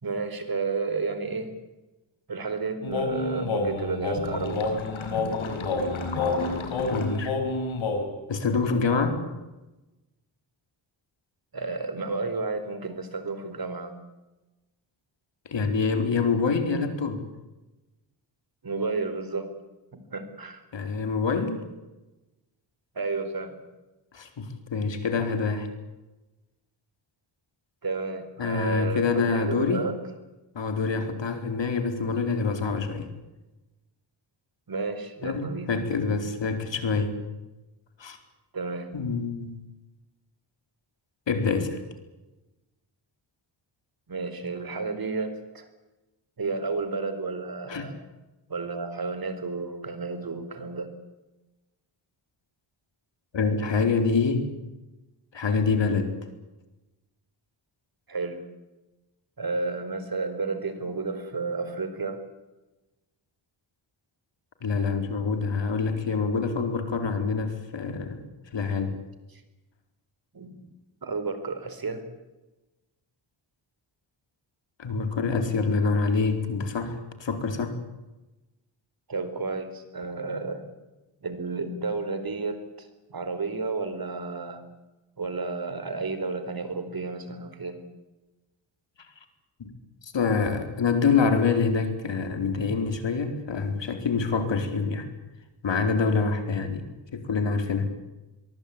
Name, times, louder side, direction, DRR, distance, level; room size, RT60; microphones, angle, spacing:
voice 1, 0.0-1.5 2.3-4.7 11.5-13.9 18.6-19.5 19.9-20.6 22.9-23.6 27.8-30.0 34.7-35.7 38.5-38.9 44.1-45.7 46.4-48.0 48.5-50.9 58.1-58.4 59.4-62.2 69.3-69.4 70.3-70.6 71.0-72.0 79.1-80.6 81.2-84.6 85.2-87.8, right 4 dB, 50° right, 10 dB, 4.5 m, -32 dB
sound 1, 2.8-8.1, left 3 dB, 85° left, 5.4 m, -28 dB
voice 2, 6.8-7.4 8.3-9.2 15.5-17.2 20.7-21.6 24.1-25.7 28.4-29.9 30.5-33.1 35.2-37.2 38.0-38.2 38.9-39.6 41.3-41.8 47.7-47.9 53.3-54.5 55.3-56.2 64.6-68.2 68.5-69.0 74.8-77.8 89.6-89.7 90.0-95.1 95.6-96.9 97.1-97.9, left 4 dB, 65° left, 7 dB, 4.4 m, -26 dB
23.5 x 23.0 x 8.7 m, 1.1 s
cardioid pair, 85°, 47 cm